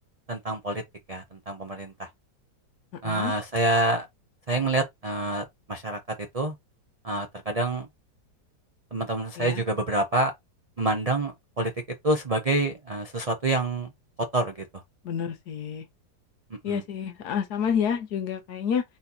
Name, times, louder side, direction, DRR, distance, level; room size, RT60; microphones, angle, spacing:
voice 1, 0.3-0.8 1.1-2.1 3.0-4.1 4.5-6.0 6.3-6.5 7.0-7.9 8.9-10.3 10.8-11.7 12.0-13.9 14.3-14.8 16.5-16.8, right 2 dB, 55° right, 0.4 m, -27 dB
voice 2, 15.0-15.8 16.6-18.8, left 7 dB, 70° left, 1.4 m, -29 dB
4.3 x 4.0 x 2.8 m
omnidirectional pair, 1.8 m